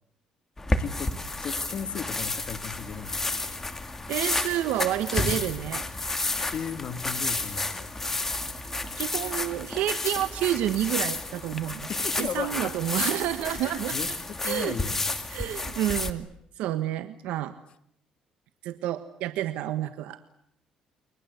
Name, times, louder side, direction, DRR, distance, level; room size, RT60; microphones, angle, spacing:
sound 1, 0.6-16.1, left 2 dB, 15° left, 2.5 m, -31 dB
voice 1, 0.7-3.4 6.5-7.9 11.9-12.7 13.5-15.1, left 7 dB, 50° left, 9 dB, 2.2 m, -36 dB
voice 2, 4.1-5.8 9.0-11.9 12.2-14.2 14.4-14.8 15.3-16.3 16.6-17.6 18.6-20.2, right 13 dB, 85° right, 10 dB, 1.3 m, -29 dB
29.5 x 24.0 x 8.2 m, 0.72 s
cardioid pair, 110°, 2 cm